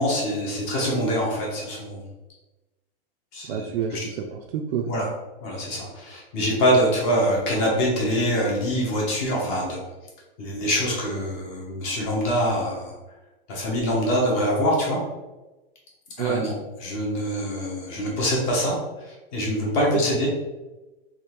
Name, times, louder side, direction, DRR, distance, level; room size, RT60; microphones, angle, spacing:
voice 1, 0.0-2.0 3.3-4.0 4.8-5.0 5.4-9.8 10.4-12.9 13.5-15.0 16.2-16.5 16.8-18.8 19.1-20.3, equal, 30° left, -3 dB, 0.7 m, -24 dB
voice 2, 3.5-4.9 16.2-16.5 19.7-20.0, right 7 dB, 75° right, 2 dB, 0.4 m, -28 dB
3.5 x 2.4 x 2.9 m, 1.1 s
supercardioid pair, 170°, 31 cm